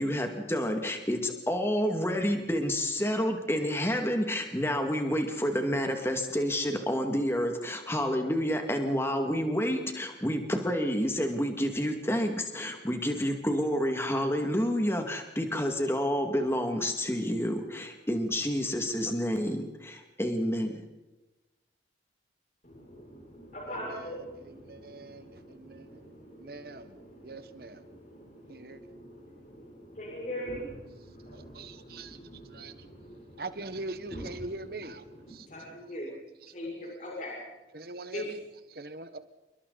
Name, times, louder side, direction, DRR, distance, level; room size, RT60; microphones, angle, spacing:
voice 1, 0.0-20.9, equal, 15° left, 4 dB, 2.3 m, -29 dB
voice 2, 22.6-36.2 36.5-37.4 38.1-38.4, equal, 40° left, -3 dB, 6.8 m, -43 dB
voice 3, 24.4-26.0 26.4-27.0 27.2-27.8 28.5-28.8 31.3-32.2 32.5-32.7 33.4-35.5 37.7-38.4 38.7-39.2, right 2 dB, 55° right, 11 dB, 1.5 m, -42 dB
29.0 x 22.5 x 4.2 m, 1.1 s
head